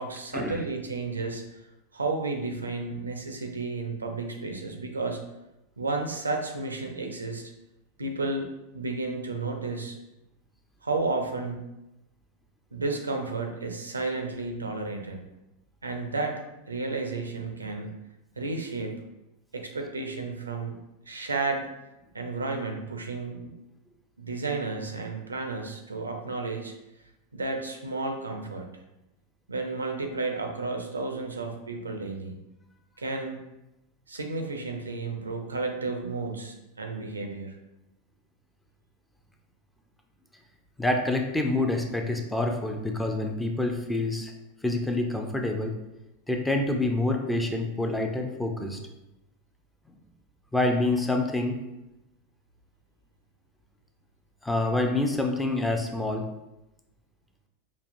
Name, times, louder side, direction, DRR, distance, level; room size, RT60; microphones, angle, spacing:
voice 1, 0.0-1.6 1.9-5.2 5.8-7.5 8.0-8.5 8.7-10.0 10.8-11.6 12.7-15.2 15.8-16.4 16.7-17.9 18.4-19.0 19.5-20.8 21.1-21.7 22.1-23.5 24.2-26.7 27.3-28.7 29.5-32.4 33.0-33.4 34.1-37.6, right 3 dB, 80° right, 4 dB, 0.5 m, -32 dB
voice 2, 40.8-44.3 44.6-45.7 46.3-48.8 50.5-51.6 54.4-56.3, left 2 dB, 5° left, 2 dB, 0.5 m, -27 dB
5.1 x 2.3 x 2.6 m, 0.94 s
figure-of-eight pair, 85°, 0 cm